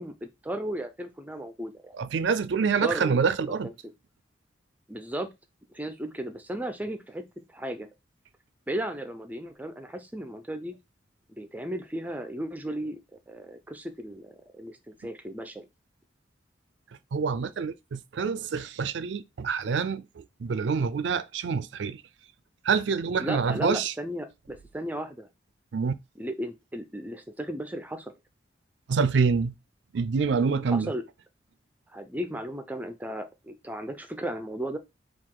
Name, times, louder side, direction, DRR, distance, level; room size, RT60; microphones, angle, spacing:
voice 1, 0.0-1.9 2.8-3.2 3.6-3.7 4.9-5.3 5.7-7.9 8.7-10.7 11.4-13.0 13.3-15.7 23.2-25.3 26.2-28.1 30.7-31.0 31.9-34.8, right 1 dB, 10° right, 0.4 m, -35 dB
voice 2, 1.9-3.7 17.1-22.0 22.6-23.9 25.7-26.0 28.9-29.5 29.9-30.9, right 5 dB, 70° right, 0.4 m, -26 dB
4.7 x 2.4 x 3.7 m
head